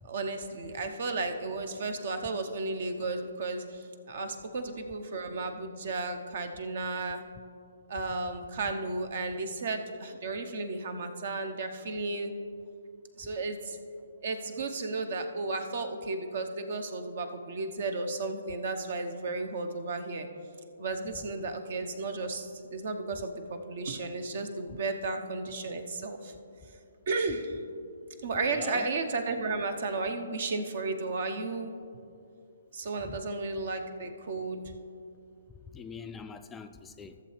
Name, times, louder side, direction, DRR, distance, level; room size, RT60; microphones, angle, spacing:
voice 1, 0.0-7.2 7.9-12.3 13.2-13.8 14.2-20.3 20.8-26.3 27.1-27.6 28.2-31.7 32.7-34.6, right 3 dB, 55° right, 7 dB, 0.9 m, -34 dB
voice 2, 28.5-28.9 33.0-33.2 35.6-37.2, left 5 dB, 10° left, 7 dB, 0.3 m, -43 dB
14.5 x 7.1 x 3.3 m, 2.5 s
figure-of-eight pair, 135°, 0 cm